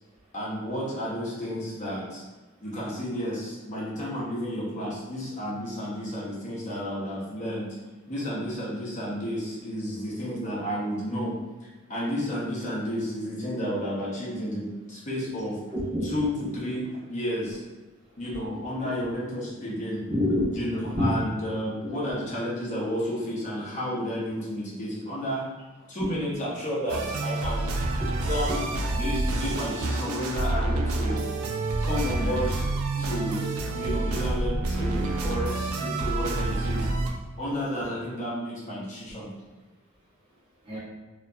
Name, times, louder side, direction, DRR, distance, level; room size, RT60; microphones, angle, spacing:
voice 1, 0.3-2.2 2.6-7.7 8.1-11.3 11.9-15.6 16.1-17.6 18.2-20.0 20.5-25.4 25.9-27.7 28.3-28.5 28.9-31.2 31.8-32.7 33.0-33.5 33.7-36.9 37.4-39.3, equal, 35° left, -7 dB, 0.7 m, -31 dB
voice 2, 15.7-16.1 18.5-18.6 20.0-20.6 20.9-21.1 21.8-21.9 22.7-22.8 26.0-26.1 28.0-28.1 28.5-28.6 29.0-29.1 33.0-33.1 40.6-40.8, left 1 dB, 25° right, -8 dB, 0.7 m, -28 dB
sound 1, 26.9-37.1, right 2 dB, 80° right, 0.3 m, -28 dB
2.6 x 2.1 x 2.2 m, 1.2 s
head